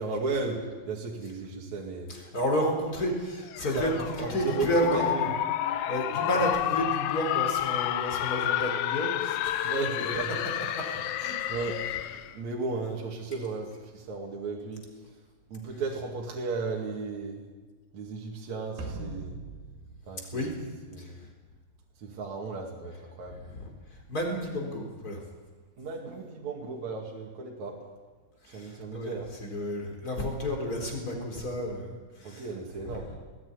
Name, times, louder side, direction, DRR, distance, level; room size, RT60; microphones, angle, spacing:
voice 1, 0.0-2.1 3.7-5.3 9.6-10.3 11.4-14.8 15.5-17.4 17.9-19.4 20.1-20.5 20.9-21.3 22.0-23.4 25.8-27.8 28.5-29.3 32.2-33.1, right 3 dB, 55° right, -1 dB, 3.4 m, -35 dB
voice 2, 2.1-5.1 5.9-9.7 10.3-11.4 20.3-20.5 21.0-21.1 23.5-23.7 24.1-25.2 28.4-32.5 32.8-33.0, equal, 25° left, 2 dB, 4.2 m, -31 dB
sound 1, 3.5-12.3, left 12 dB, 80° left, 1.8 m, -30 dB
sound 2, 18.8-21.2, right 3 dB, 85° right, 4.7 m, -41 dB
20.0 x 15.5 x 9.8 m, 1.3 s
omnidirectional pair, 4.3 m